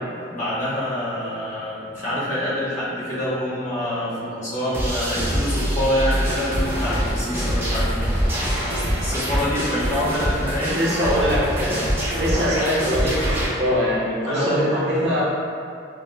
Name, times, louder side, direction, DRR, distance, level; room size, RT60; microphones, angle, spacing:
voice 1, 0.3-8.1 9.0-10.8 14.2-14.6, left 1 dB, 40° left, -11 dB, 1.0 m, -26 dB
sound 1, 4.7-13.5, equal, 10° right, 0.5 m, -24 dB
voice 2, 10.8-11.8 12.2-15.2, equal, 60° right, -7 dB, 0.7 m, -22 dB
4.6 x 2.0 x 2.2 m, 2.4 s
head